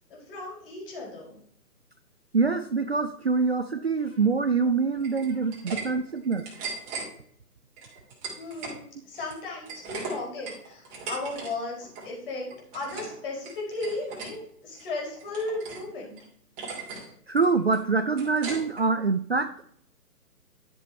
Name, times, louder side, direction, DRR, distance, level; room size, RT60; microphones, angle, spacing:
voice 1, 0.1-1.4 4.0-4.2 5.1-6.0 6.9-7.0 8.4-16.2, left 2 dB, 35° left, -2 dB, 4.8 m, -36 dB
voice 2, 2.3-6.5 17.3-19.7, right 4 dB, 45° right, 9 dB, 0.5 m, -25 dB
sound 1, 5.0-5.8 6.2-7.1 7.8-8.8 9.1-11.5 11.8-12.1 12.5-13.2 13.4-14.3 14.8-15.9 16.2-16.3 16.6-17.1 17.4-18.8, right 4 dB, 15° right, 2.8 m, -38 dB
12.0 x 7.1 x 4.3 m, 0.63 s
hypercardioid pair, 155°, 48 cm